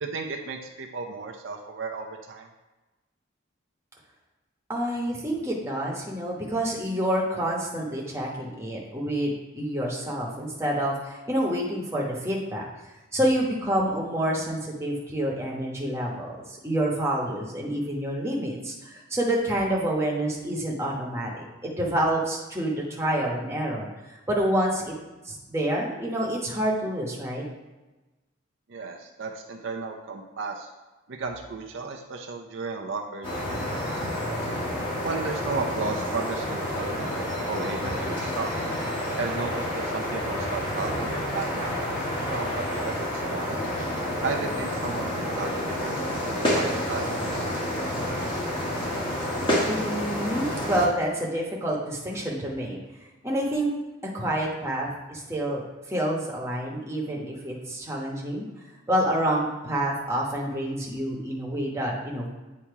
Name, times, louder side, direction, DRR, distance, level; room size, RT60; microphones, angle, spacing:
voice 1, 0.0-2.5 28.7-30.7 31.1-33.3 34.0-34.1 35.0-38.5 39.2-42.0 42.3-43.6 44.2-47.8, right 4 dB, 65° right, 3 dB, 0.6 m, -34 dB
voice 2, 4.7-12.6 13.1-23.9 24.3-24.9 25.2-27.4 49.6-52.8 53.2-53.7 54.1-58.5 58.9-62.3, right 1 dB, 15° right, -3 dB, 1.1 m, -28 dB
sound 1, 33.2-50.9, left 1 dB, 25° left, 1.2 m, -29 dB
8.5 x 2.9 x 4.6 m, 1.1 s
head